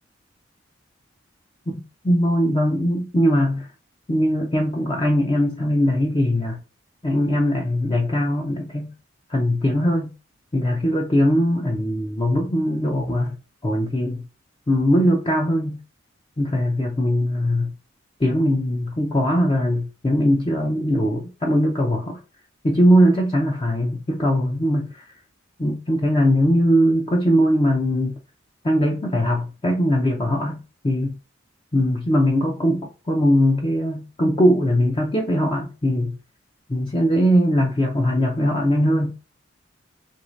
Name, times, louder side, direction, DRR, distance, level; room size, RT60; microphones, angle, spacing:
voice 1, 1.7-3.7 4.1-6.6 7.0-8.9 9.3-10.1 10.5-13.4 13.6-14.3 14.7-15.8 16.4-17.7 18.2-22.2 22.6-25.0 25.6-28.2 28.6-30.6 30.8-31.2 31.7-36.2 36.7-39.1, equal, 25° left, 0.4 m, -20 dB
3.2 x 2.6 x 3.0 m
head